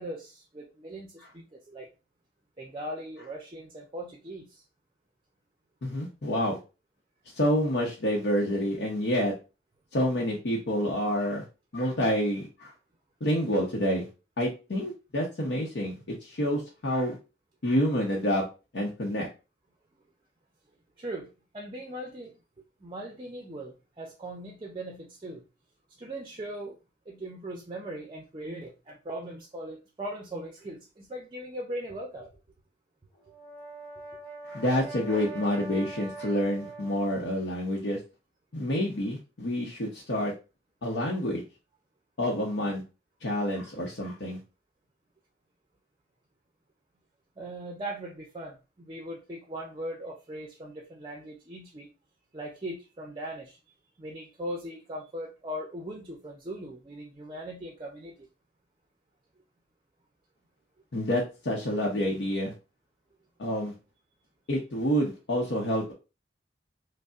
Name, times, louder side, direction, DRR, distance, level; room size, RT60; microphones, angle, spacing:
voice 1, 0.0-1.9 2.6-4.6 21.0-22.4 22.8-25.4 26.0-26.8 27.1-32.4 47.4-51.9 52.3-53.6 54.0-58.3, right 1 dB, 25° right, 1 dB, 0.4 m, -39 dB
voice 2, 5.8-6.6 7.3-9.3 9.9-11.4 11.7-12.7 13.2-14.1 14.4-17.2 17.6-18.4 18.7-19.3 34.4-38.0 38.5-40.3 40.8-41.4 42.2-42.8 43.2-44.4 60.9-62.5 63.4-63.7 64.5-65.9, equal, 85° left, -3 dB, 0.7 m, -28 dB
Brass instrument, 33.2-37.4, right 3 dB, 35° left, 1.3 m, -42 dB
5.1 x 2.0 x 2.4 m, 0.30 s
head